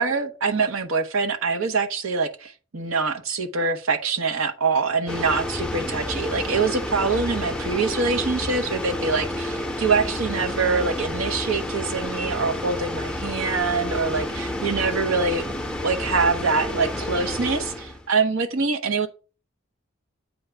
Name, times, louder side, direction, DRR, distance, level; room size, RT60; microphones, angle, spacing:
voice 1, 0.0-15.4 15.8-19.1, right 4 dB, 80° right, 1.0 m, -24 dB
sound 1, 5.1-18.1, left 1 dB, 5° left, 0.6 m, -30 dB
8.6 x 3.4 x 4.9 m
head